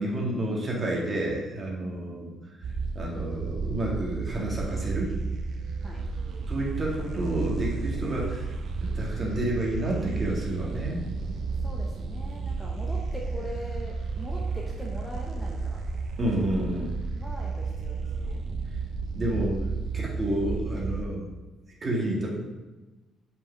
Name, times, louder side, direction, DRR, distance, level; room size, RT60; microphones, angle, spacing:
voice 1, 0.0-2.3 2.6-2.7 3.0-5.1 6.5-11.0 16.2-17.0 19.2-19.7 19.9-21.3 21.8-22.3, right 1 dB, 30° right, -3 dB, 2.0 m, -30 dB
voice 2, 1.8-2.4 5.8-6.1 11.6-15.8 17.2-18.4, equal, 5° left, -3 dB, 1.0 m, -42 dB
sound 1, 2.6-21.0, right 4 dB, 60° right, 0.8 m, -32 dB
5.5 x 5.5 x 5.8 m, 1.2 s
cardioid pair, 120°, 0 cm